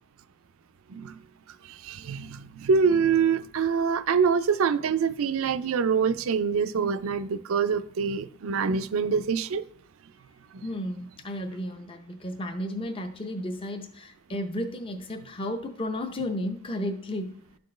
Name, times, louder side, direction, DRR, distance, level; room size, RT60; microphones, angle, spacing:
voice 1, 1.9-9.6, right 6 dB, 65° right, 0.4 m, -25 dB
voice 2, 10.6-17.3, left 1 dB, 25° left, 0.5 m, -33 dB
12.0 x 4.3 x 3.2 m
head